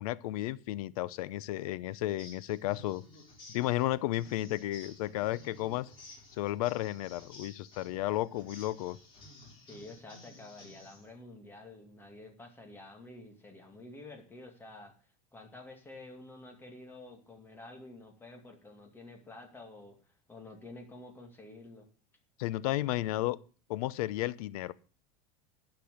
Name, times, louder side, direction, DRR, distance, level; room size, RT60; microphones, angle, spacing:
voice 1, 0.0-3.0 3.5-5.9 6.4-9.0 22.4-23.4 23.7-24.7, left 16 dB, 85° left, 0.7 m, -33 dB
sound 1, 2.1-11.1, left 2 dB, 25° left, 4.2 m, -54 dB
voice 2, 9.6-14.9 15.3-21.9, left 2 dB, 10° left, 2.2 m, -50 dB
12.0 x 6.1 x 8.1 m
supercardioid pair, 160°, 18 cm